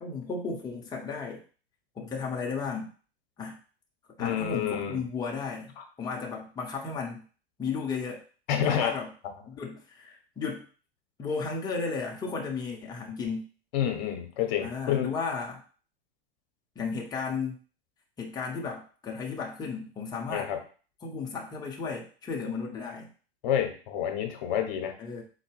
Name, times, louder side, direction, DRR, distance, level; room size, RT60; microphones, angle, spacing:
voice 1, 0.0-1.4 2.0-2.9 3.4-3.6 4.2-7.2 7.6-8.2 8.5-9.1 9.5-10.6 11.2-13.4 14.6-15.6 16.8-17.6 18.2-20.5 21.0-23.1 25.0-25.2, left 5 dB, 15° left, 0 dB, 0.6 m, -34 dB
voice 2, 4.2-5.0 8.5-8.9 13.7-15.1 20.3-20.6 23.4-24.9, left 9 dB, 50° left, 4 dB, 0.9 m, -28 dB
4.1 x 2.1 x 3.2 m, 0.39 s
figure-of-eight pair, 90°, 29 cm